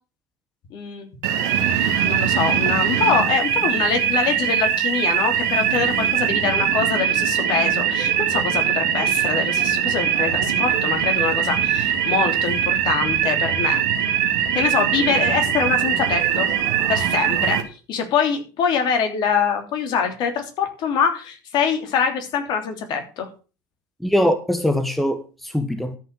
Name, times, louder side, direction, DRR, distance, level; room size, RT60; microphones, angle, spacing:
voice 1, 0.7-1.1 1.7-13.8 14.5-16.5 16.9-17.6 17.9-23.3, left 6 dB, 50° left, 3.1 m, -24 dB
sound 1, 1.2-17.6, right 9 dB, 65° right, 2.3 m, -21 dB
voice 2, 24.0-26.0, equal, ahead, 1.3 m, -22 dB
13.0 x 5.9 x 6.6 m
hypercardioid pair, 75°, 10 cm